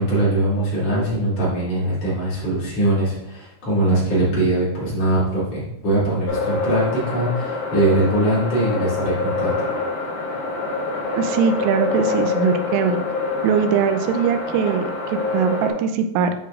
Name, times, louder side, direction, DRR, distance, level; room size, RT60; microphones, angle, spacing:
voice 1, 0.0-9.6, right 1 dB, 40° left, -8 dB, 2.9 m, -21 dB
sound 1, 6.3-15.7, left 3 dB, 60° left, 4.4 m, -26 dB
voice 2, 11.2-13.0 13.4-16.3, right 7 dB, 85° right, 7 dB, 3.1 m, -21 dB
9.7 x 5.6 x 2.5 m, 0.81 s
omnidirectional pair, 5.8 m